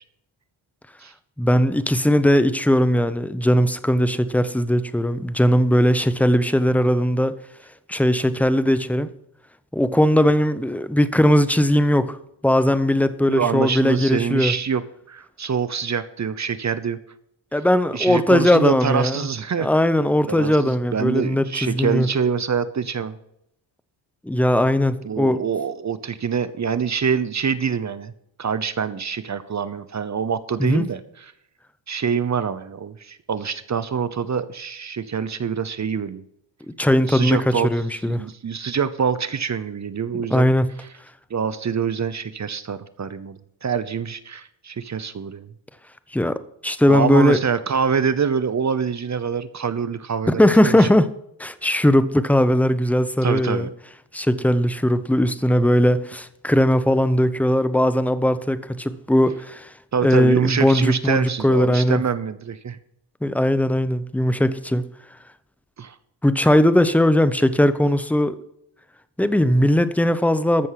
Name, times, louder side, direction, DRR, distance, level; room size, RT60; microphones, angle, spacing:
voice 1, 1.4-7.4 7.9-9.1 9.7-12.2 12.4-14.5 17.5-19.3 19.6-22.1 24.2-25.4 30.6-30.8 36.8-38.2 40.1-40.7 46.1-47.4 50.3-51.1 51.4-53.7 54.1-59.7 60.0-62.0 63.2-64.8 66.2-68.4 69.2-70.7, left 1 dB, 5° left, 0.7 m, -19 dB
voice 2, 13.3-17.0 17.9-19.7 20.3-23.2 25.0-28.1 28.4-31.3 31.9-36.2 37.1-37.7 38.0-40.5 41.3-45.5 46.9-50.9 53.2-53.7 59.9-62.8 65.8-66.0, right 6 dB, 35° right, 0.8 m, -25 dB
14.0 x 6.4 x 5.8 m
cardioid pair, 95°, 46 cm